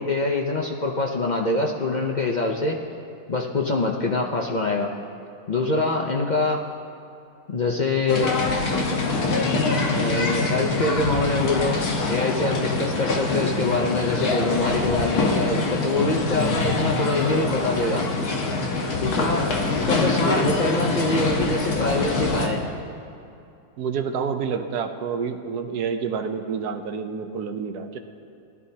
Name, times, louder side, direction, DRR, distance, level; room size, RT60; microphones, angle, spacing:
voice 1, 0.0-2.8 3.3-4.9 5.5-6.6 7.5-8.3 9.9-11.8 12.1-18.0 19.0-22.6, left 2 dB, 40° left, 0 dB, 0.7 m, -24 dB
sound 1, 8.1-22.5, left 3 dB, 80° left, 1.8 m, -24 dB
voice 2, 23.8-28.0, right 6 dB, 85° right, 7 dB, 1.3 m, -28 dB
19.5 x 12.0 x 2.8 m, 2.6 s
omnidirectional pair, 1.6 m